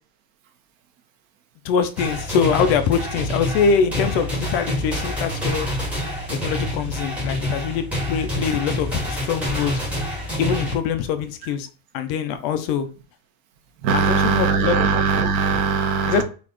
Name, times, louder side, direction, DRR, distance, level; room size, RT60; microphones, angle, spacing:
voice 1, 1.6-5.7 6.3-9.8 10.4-11.7 11.9-12.9 13.9-14.8 16.1-16.2, left 6 dB, 40° left, 0.5 m, -23 dB
sound 1, 2.0-10.8, left 1 dB, 5° right, 1.4 m, -27 dB
voice 2, 13.8-16.2, right 5 dB, 65° right, 1.2 m, -20 dB
4.2 x 2.4 x 4.3 m
supercardioid pair, 160°, 43 cm